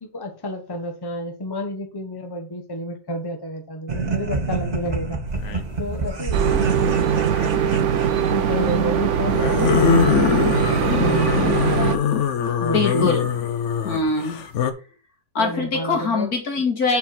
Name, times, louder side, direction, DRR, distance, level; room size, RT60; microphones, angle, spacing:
voice 1, 0.0-5.2 5.8-7.8 8.3-10.5 11.0-11.7 12.4-13.2 15.4-16.3, equal, 15° left, 5 dB, 1.0 m, -30 dB
sound 1, 3.9-8.7, right 3 dB, 30° right, 1.1 m, -28 dB
sound 2, 5.4-5.7 7.3-7.8 9.3-14.7, left 7 dB, 60° left, 1.0 m, -22 dB
sound 3, 6.3-12.0, right 8 dB, 60° right, 1.0 m, -21 dB
voice 2, 12.7-13.2 13.8-14.4 15.3-17.0, left 4 dB, 75° left, 3 dB, 2.3 m, -22 dB
5.5 x 4.7 x 5.8 m, 0.35 s
omnidirectional pair, 1.6 m